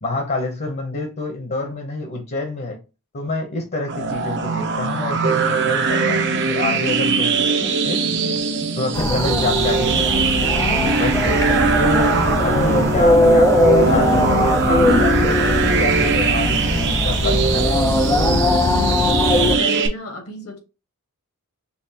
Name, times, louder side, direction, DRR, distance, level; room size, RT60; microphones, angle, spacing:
voice 1, 0.0-2.8 3.1-8.1 8.8-10.2 11.0-11.4 11.8-16.6 16.8-17.9, left 2 dB, 45° left, 1.0 m, -27 dB
sound 1, 3.9-19.9, right 4 dB, 55° right, 0.8 m, -20 dB
sound 2, 8.9-19.6, left 2 dB, 15° left, 0.3 m, -20 dB
voice 2, 19.2-20.6, left 2 dB, 75° left, 1.6 m, -32 dB
5.7 x 2.4 x 2.8 m
head